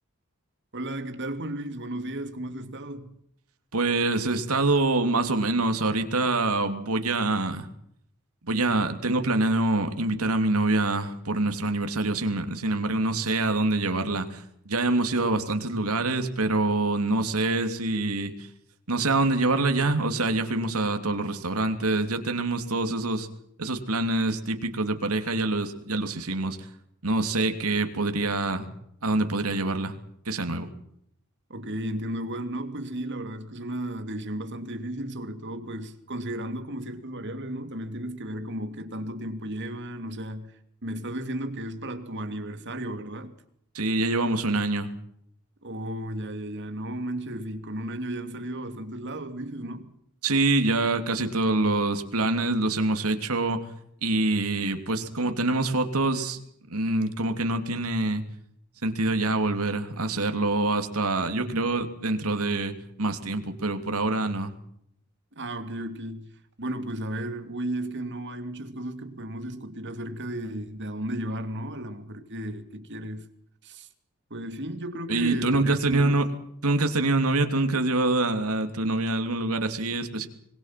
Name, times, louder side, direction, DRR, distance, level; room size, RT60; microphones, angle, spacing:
voice 1, 0.7-3.2 31.5-43.4 45.6-49.9 61.4-61.7 65.3-73.3 73.6-73.9 74.3-76.3, right 1 dB, 55° right, 2.8 m, -34 dB
voice 2, 3.7-7.7 8.4-18.3 18.9-23.3 23.6-26.7 27.0-28.7 29.0-29.9 30.3-30.7 43.7-44.9 50.2-53.7 54.0-56.4 56.7-58.2 58.8-64.5 75.1-76.3 76.6-80.3, right 2 dB, 90° right, 3.1 m, -25 dB
26.0 x 21.5 x 6.0 m
head